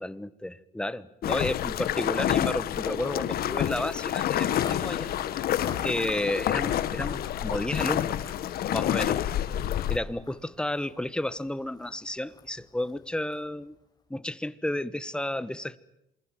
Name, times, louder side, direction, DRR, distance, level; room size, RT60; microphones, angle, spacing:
voice 1, 0.0-5.1 5.8-8.2 8.7-9.2 9.9-13.8 14.1-15.8, left 1 dB, 5° left, 15 dB, 1.1 m, -32 dB
sound 1, 1.2-10.0, left 11 dB, 65° left, 1.5 m, -28 dB
Walk footsteps, 4.4-13.6, left 4 dB, 25° left, 4.3 m, -49 dB
27.5 x 21.5 x 9.1 m, 0.85 s
cardioid pair, 110°, 17 cm